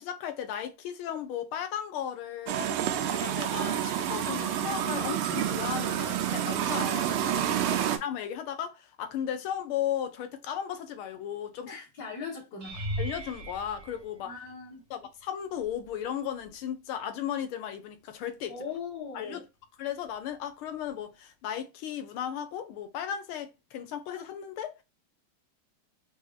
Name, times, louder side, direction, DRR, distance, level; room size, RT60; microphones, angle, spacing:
voice 1, 0.0-7.6 8.0-12.1 13.0-14.3 14.9-18.5 19.1-19.4 19.8-24.8, left 9 dB, 85° left, 1.6 m, -36 dB
sound 1, 2.5-8.0, right 10 dB, 85° right, 1.5 m, -29 dB
voice 2, 7.5-7.9 11.7-12.9 14.2-14.8 18.5-19.4, left 5 dB, 55° left, 1.9 m, -40 dB
sound 2, 12.6-14.9 15.6-16.0 16.4-16.5 20.9-21.0, right 1 dB, 45° right, 1.0 m, -38 dB
4.7 x 2.7 x 2.4 m
omnidirectional pair, 2.3 m